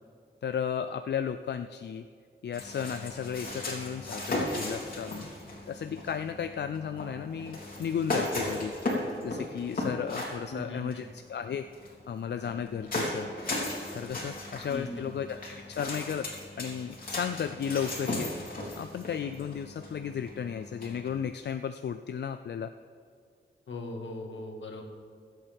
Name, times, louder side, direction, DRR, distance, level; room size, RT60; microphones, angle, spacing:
voice 1, 0.4-2.0 2.4-5.3 5.7-8.7 9.2-13.3 13.9-16.3 16.6-18.3 18.8-22.7, left 7 dB, 65° left, 9 dB, 0.4 m, -34 dB
sound 1, 2.5-21.3, left 1 dB, 45° left, 3.3 m, -36 dB
voice 2, 10.5-11.0 14.7-15.1 23.7-24.8, left 2 dB, 80° left, 2 dB, 1.8 m, -39 dB
22.5 x 8.4 x 3.5 m, 2.2 s
wide cardioid pair, 110°, 19 cm